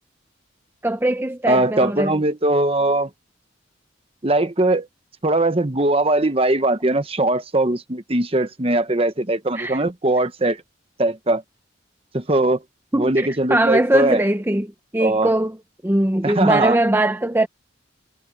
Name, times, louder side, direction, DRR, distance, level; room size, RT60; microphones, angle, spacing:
voice 1, 0.8-2.2 9.5-9.8 12.9-15.6 15.8-17.5, right 1 dB, 10° right, 0.8 m, -21 dB
voice 2, 1.5-3.1 4.2-4.9 5.2-10.6 11.0-11.4 12.1-12.6 12.9-14.2 15.0-15.3 16.2-16.8, right 2 dB, 30° right, 1.1 m, -20 dB
head